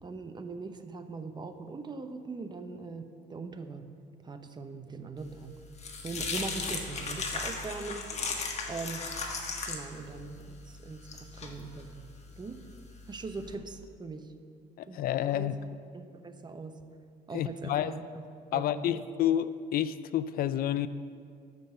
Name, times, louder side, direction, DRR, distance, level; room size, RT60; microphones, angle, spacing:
voice 1, 0.0-3.9 4.2-5.5 6.0-8.1 8.7-9.1 9.6-12.1 12.4-12.6 13.1-14.3 14.9-15.1 15.3-15.5 15.9-16.8 17.3-18.2 18.5-18.8, right 4 dB, 25° right, 8 dB, 0.8 m, -41 dB
sound 1, 5.3-13.5, left 4 dB, 40° left, 1.5 m, -37 dB
voice 2, 14.8-15.6 17.3-18.0 18.5-20.9, left 11 dB, 60° left, 14 dB, 0.4 m, -29 dB
12.5 x 5.4 x 6.7 m, 2.2 s
cardioid pair, 110°, 17 cm